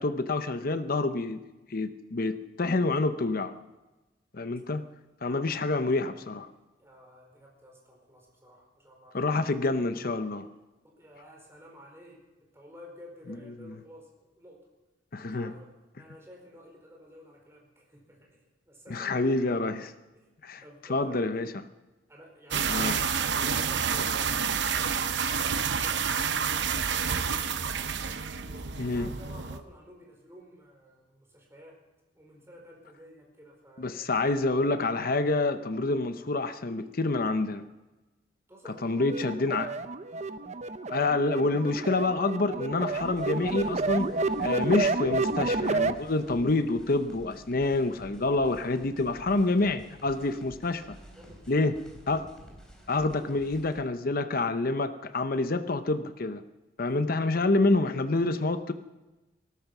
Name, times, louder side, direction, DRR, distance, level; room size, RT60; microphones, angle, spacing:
voice 1, 0.0-1.4 1.7-3.5 4.3-4.8 5.2-6.5 9.1-10.5 15.1-15.5 18.9-19.9 20.4-20.6 20.9-21.5 22.7-23.0 28.8-29.1 33.8-37.6 38.8-39.7 40.9-44.1 44.4-51.0 51.5-51.7 52.1-52.3 52.9-56.4 56.8-58.7, left 2 dB, 50° left, 9 dB, 0.8 m, -27 dB
voice 2, 5.2-5.6 6.8-9.3 10.8-14.6 15.1-15.6 16.0-19.9 20.1-20.3 20.6-21.5 22.1-26.0 26.6-27.7 28.2-31.8 32.1-34.3 38.5-38.9 51.1-51.6 56.8-57.1, equal, 15° right, -1 dB, 4.8 m, -52 dB
sound 1, 22.5-29.6, right 6 dB, 65° right, 0.9 m, -29 dB
sound 2, 39.0-45.9, right 3 dB, 40° right, 0.6 m, -30 dB
sound 3, 42.9-53.8, equal, 5° left, 3.8 m, -51 dB
19.0 x 13.0 x 6.0 m, 1.1 s
head